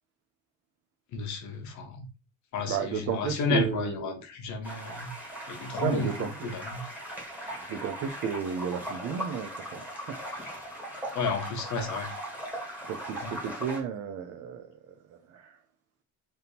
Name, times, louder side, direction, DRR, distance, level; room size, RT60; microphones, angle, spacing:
voice 1, 1.1-2.1 2.5-5.1 5.5-6.9 11.1-12.1 13.2-13.3, left 4 dB, 55° left, 1.0 m, -32 dB
voice 2, 2.7-4.2 5.8-6.4 7.7-10.2 12.9-14.9 15.3-15.5, right 7 dB, 50° right, 0.5 m, -33 dB
sound 1, 4.6-13.8, right 1 dB, 5° right, 1.3 m, -39 dB
3.6 x 2.8 x 4.1 m
cardioid pair, 160°, 33 cm